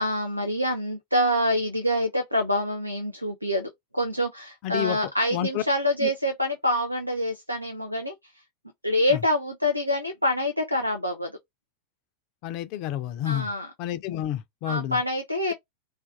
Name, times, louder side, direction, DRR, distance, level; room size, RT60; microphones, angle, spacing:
voice 1, 0.0-8.1 8.8-11.3 13.3-13.7 14.6-15.5, left 1 dB, 90° right, 0.4 m, -26 dB
voice 2, 4.6-5.0 5.3-5.6 6.0-6.1 9.1-9.2 12.4-13.5 13.8-15.0, left 12 dB, 40° left, 0.4 m, -29 dB
2.4 x 2.2 x 2.5 m
figure-of-eight pair, 90°, 0 cm